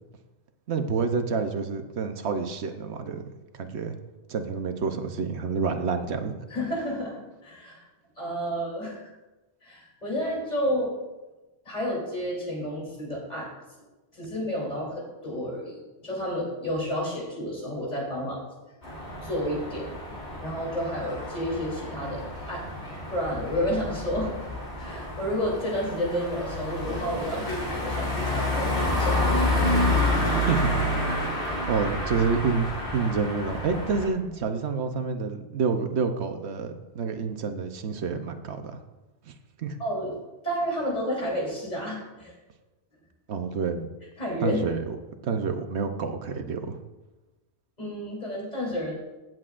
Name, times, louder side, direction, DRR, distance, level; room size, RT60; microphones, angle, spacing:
voice 1, 0.7-3.2 3.5-3.9 4.3-6.3 30.5-30.7 31.7-32.7 32.9-38.7 39.6-39.8 43.3-43.9 44.4-44.8 45.2-46.8, right 5 dB, 85° right, 7 dB, 1.1 m, -28 dB
voice 2, 6.5-7.1 7.4-7.8 8.2-9.1 9.6-10.9 11.7-13.5 14.1-18.5 19.2-19.9 20.4-22.2 22.5-22.7 23.1-24.3 24.8-29.3 39.8-40.1 40.4-42.3 44.2-44.6 47.8-48.9, equal, 40° left, -3 dB, 3.5 m, -30 dB
sound 1, 18.8-34.1, left 1 dB, 85° left, 3.4 m, -29 dB
16.5 x 7.7 x 2.5 m, 1.1 s
omnidirectional pair, 1.1 m